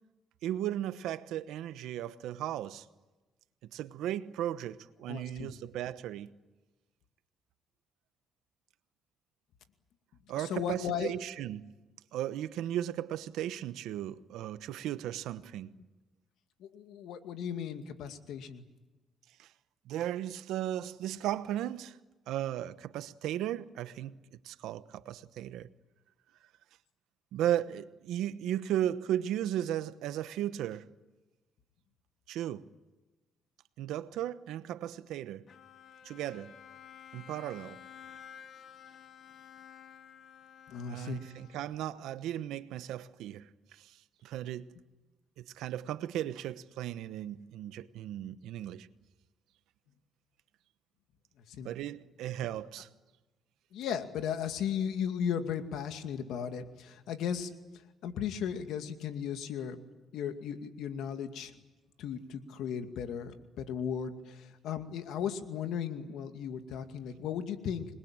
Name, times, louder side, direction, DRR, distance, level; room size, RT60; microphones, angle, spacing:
voice 1, 0.4-2.8 3.7-6.3 10.3-11.7 12.1-15.7 19.4-19.5 19.9-22.0 22.3-24.2 24.4-25.7 27.3-30.8 32.3-32.7 33.8-35.4 36.0-36.5 37.1-37.8 40.9-43.5 43.8-44.0 44.2-44.7 45.4-48.9 51.6-52.9, right 12 dB, 90° right, 1.1 m, -36 dB
voice 2, 5.1-5.5 10.4-11.1 16.6-18.6 40.7-41.2 51.5-51.7 53.7-57.5 58.0-59.8 60.1-61.5 62.0-67.9, left 8 dB, 85° left, 2.3 m, -36 dB
Bowed string instrument, 35.5-41.9, left 8 dB, 60° left, 1.3 m, -52 dB
27.0 x 21.5 x 8.9 m
cardioid pair, 90°, 0 cm